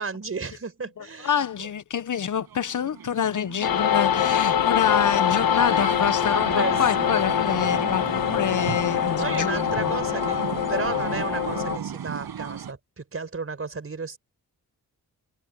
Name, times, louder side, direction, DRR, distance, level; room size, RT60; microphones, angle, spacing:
voice 1, 0.0-1.7 6.3-6.8 9.2-10.4 10.7-14.2, right 4 dB, 40° right, 5.3 m, -33 dB
voice 2, 1.0-10.0, left 8 dB, 55° left, 1.0 m, -27 dB
sound 1, 2.5-12.7, right 8 dB, 85° right, 7.9 m, -36 dB
sound 2, 3.6-11.8, left 9 dB, 75° left, 1.3 m, -24 dB
cardioid pair, 95°, 36 cm